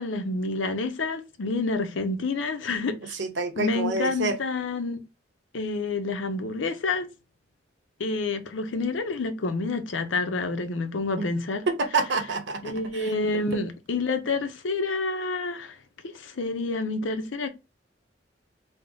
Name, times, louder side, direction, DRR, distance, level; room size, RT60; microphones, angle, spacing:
voice 1, 0.0-3.2 3.6-5.0 5.5-7.1 8.0-11.6 12.6-15.7 16.0-17.5, left 3 dB, 80° left, 0.6 m, -28 dB
voice 2, 3.1-4.4 11.2-11.3 11.7-13.4, right 3 dB, 65° right, 0.7 m, -28 dB
3.5 x 2.0 x 3.7 m
head